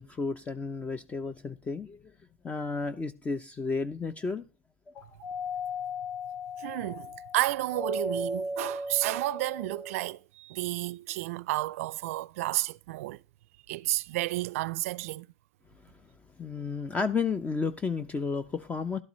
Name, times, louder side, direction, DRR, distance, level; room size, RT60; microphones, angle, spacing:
voice 1, 0.0-2.0 2.4-4.4 4.9-5.2 15.7-16.0 16.4-19.0, left 4 dB, 15° left, 0.6 m, -32 dB
Doorbell, 5.2-10.1, left 1 dB, 55° left, 4.2 m, -36 dB
voice 2, 6.6-13.2 13.7-15.3, right 18 dB, 70° right, 0.4 m, -31 dB
12.0 x 11.5 x 3.1 m
hypercardioid pair, 105°, 8 cm